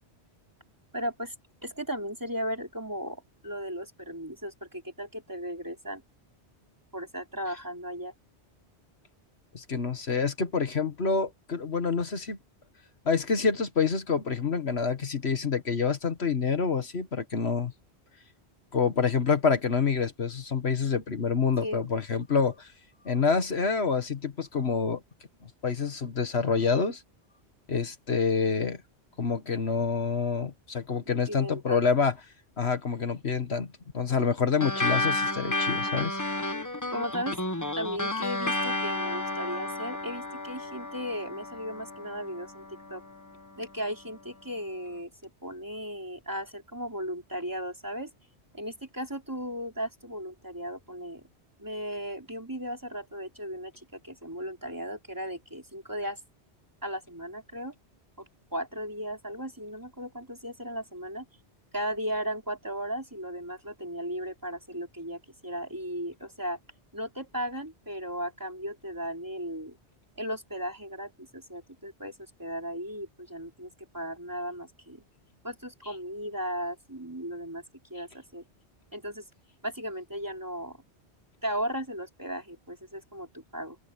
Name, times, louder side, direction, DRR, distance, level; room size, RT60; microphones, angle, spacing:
voice 1, 0.9-1.3 1.6-6.0 6.9-8.1 21.6-21.8 31.0-31.8 36.9-37.4 37.7-43.0 43.6-48.1 48.5-51.2 51.6-56.2 56.8-57.7 58.2-58.3 58.5-61.2 61.7-66.6 66.9-69.8 70.2-75.0 75.4-77.6 77.9-78.4 78.9-79.3 79.6-80.8 81.4-83.8, equal, 15° right, 3.5 m, -36 dB
voice 2, 9.5-12.4 13.1-17.7 18.7-22.7 23.1-25.0 25.6-27.0 27.7-28.8 29.2-32.2 32.6-36.2, left 5 dB, 70° left, 1.8 m, -27 dB
sound 1, 34.6-43.4, left 2 dB, 15° left, 1.2 m, -32 dB
open air
omnidirectional pair, 1.1 m